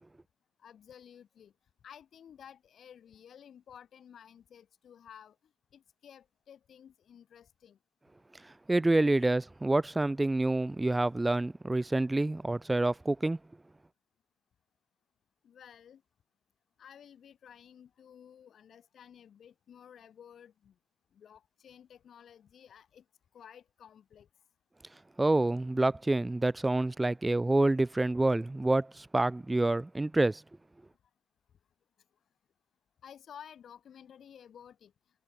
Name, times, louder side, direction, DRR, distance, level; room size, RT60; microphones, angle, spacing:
voice 1, 0.6-1.5 1.8-5.4 5.7-7.8 15.4-16.0 16.8-20.7 21.1-23.0 23.3-24.3 33.0-34.9, left 8 dB, 60° left, 1.5 m, -53 dB
voice 2, 8.7-13.4 25.2-30.4, right 2 dB, 15° right, 0.3 m, -27 dB
cardioid pair, 90°, 0 cm